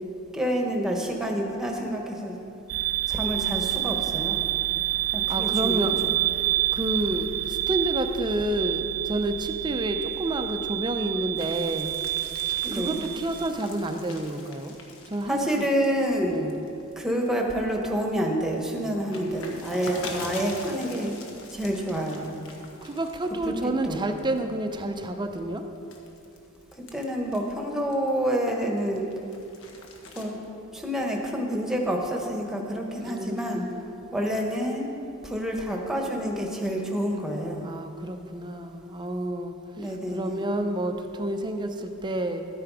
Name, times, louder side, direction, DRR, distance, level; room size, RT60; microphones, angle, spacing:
voice 1, 0.3-2.4 3.1-4.4 5.1-5.9 12.6-13.0 15.3-16.4 17.0-21.2 21.5-22.3 23.4-24.0 26.9-29.1 30.1-30.4 30.7-33.6 34.1-34.9 35.2-37.7 39.8-40.4, equal, ahead, 0 dB, 1.3 m, -28 dB
sound 1, 2.7-13.5, right 13 dB, 80° right, 0.4 m, -28 dB
voice 2, 5.3-6.0 6.7-11.9 12.7-14.8 15.1-15.7 16.2-16.5 22.8-25.6 32.9-34.1 37.6-42.5, right 1 dB, 20° right, 6 dB, 0.6 m, -30 dB
sound 2, 11.3-17.3 17.7-23.6 23.9-24.4 25.0-28.3 28.7-30.2, left 3 dB, 70° left, 1.4 m, -44 dB
12.5 x 9.5 x 4.9 m, 2.7 s
head